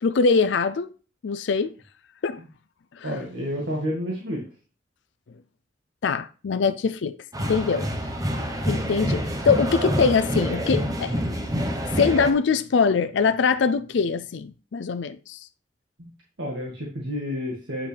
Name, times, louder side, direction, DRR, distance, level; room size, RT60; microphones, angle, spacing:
voice 1, 0.0-0.9 1.2-1.7 2.2-2.4 3.0-3.2 6.0-7.9 8.4-11.2 11.9-15.5, left 5 dB, 70° left, 0.4 m, -23 dB
voice 2, 3.0-4.4 7.7-7.8 16.0-16.1 16.4-17.9, equal, 75° right, 1.8 m, -30 dB
sound 1, 7.3-12.3, equal, 20° right, 1.0 m, -27 dB
8.9 x 5.7 x 3.4 m
head